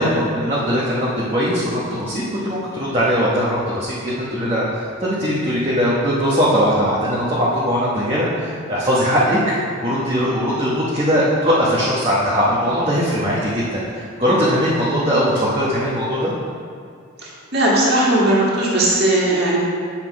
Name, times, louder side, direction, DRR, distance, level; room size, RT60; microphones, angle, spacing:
voice 1, 0.0-16.3, equal, 25° right, -8 dB, 1.0 m, -20 dB
voice 2, 17.2-19.6, right 1 dB, 50° right, -5 dB, 1.9 m, -17 dB
8.1 x 5.9 x 4.7 m, 2.2 s
head